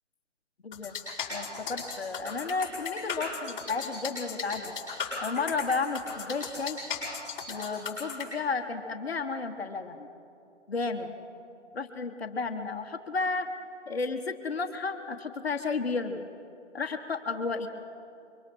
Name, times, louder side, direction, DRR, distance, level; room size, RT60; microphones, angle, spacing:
voice 1, 0.6-1.0 1.3-4.8 5.2-6.8 7.5-10.1 10.7-11.1 11.7-13.5 13.9-16.3 16.7-17.7, left 4 dB, 55° left, 6 dB, 1.4 m, -32 dB
sound 1, 0.7-8.2, left 5 dB, 10° left, 6.1 m, -36 dB
25.0 x 23.5 x 4.4 m, 2.8 s
figure-of-eight pair, 150°, 37 cm